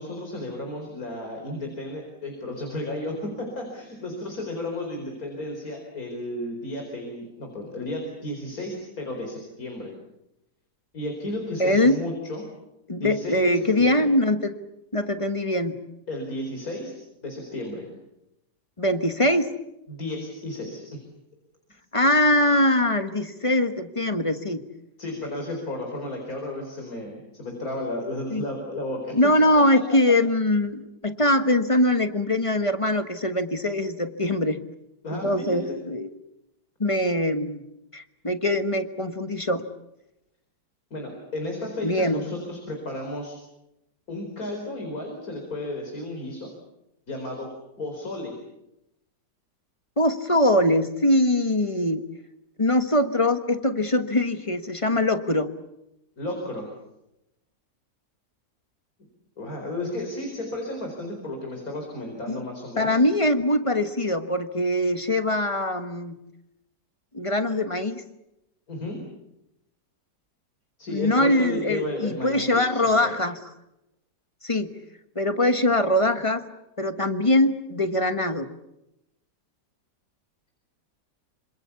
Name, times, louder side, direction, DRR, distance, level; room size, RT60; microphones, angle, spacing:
voice 1, 0.0-9.9 10.9-12.4 13.0-14.1 16.1-16.9 17.2-17.9 19.9-21.0 25.0-29.1 35.0-35.8 40.9-43.3 44.1-46.5 47.1-47.5 47.8-48.3 56.2-56.7 59.4-63.0 68.7-69.0 70.8-73.1, left 1 dB, 55° left, 2 dB, 5.1 m, -33 dB
voice 2, 11.6-12.0 12.9-14.5 14.9-15.8 18.8-19.5 21.9-24.6 28.3-28.5 29.1-34.6 35.1-36.1 36.8-37.6 37.9-39.6 41.8-42.2 50.0-52.0 52.6-55.5 62.3-62.4 62.8-66.2 67.1-68.0 70.9-73.4 74.4-74.7 75.1-76.4 76.8-78.5, left 1 dB, 20° left, 9 dB, 1.2 m, -22 dB
27.0 x 26.5 x 7.1 m, 0.88 s
omnidirectional pair, 1.9 m